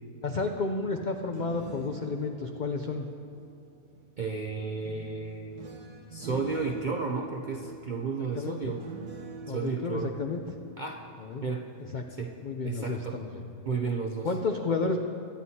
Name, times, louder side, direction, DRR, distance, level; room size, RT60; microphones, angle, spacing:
voice 1, 0.2-3.1 8.3-8.7 9.5-10.4 11.2-11.4 11.9-12.1 12.4-13.4 14.2-15.1, left 3 dB, 75° left, 4 dB, 0.4 m, -31 dB
sound 1, 1.1-4.0 4.8-11.7 12.1-12.4, right 5 dB, 85° right, 1.6 m, -45 dB
voice 2, 4.2-5.7 6.1-8.8 9.5-10.2 10.8-11.0 11.4-11.6 12.1-12.3 12.6-13.2 13.7-14.3, right 4 dB, 60° right, 1 dB, 0.5 m, -33 dB
23.5 x 9.4 x 2.8 m, 2.6 s
omnidirectional pair, 1.6 m